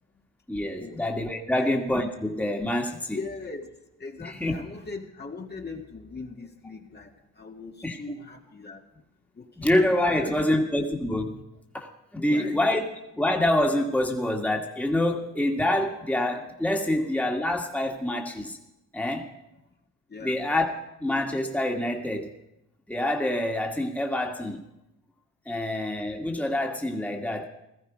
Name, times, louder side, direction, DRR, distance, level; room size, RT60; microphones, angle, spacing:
voice 1, 0.5-3.2 4.2-4.5 7.8-8.0 9.6-11.4 11.7-12.8 13.1-18.6 18.9-19.3 20.2-20.7 21.0-22.3 22.9-24.6 25.5-27.4, left 1 dB, 5° left, 1 dB, 1.9 m, -26 dB
voice 2, 3.1-8.8 9.4-9.7 10.1-10.6 12.2-12.5 20.1-20.4 25.5-25.6, left 4 dB, 30° left, 2 dB, 2.0 m, -40 dB
17.0 x 14.0 x 5.1 m, 0.88 s
cardioid pair, 75°, 33 cm